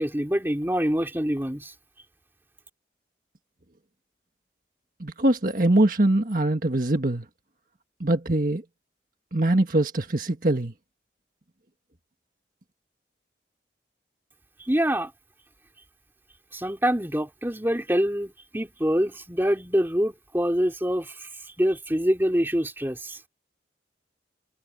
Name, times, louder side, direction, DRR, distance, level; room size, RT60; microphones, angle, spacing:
voice 1, 0.0-1.7 14.6-15.1 16.5-21.3 21.6-23.2, equal, 10° right, 3.2 m, -25 dB
voice 2, 5.0-7.3 8.0-8.6 9.3-10.7, right 1 dB, 50° right, 1.7 m, -23 dB
head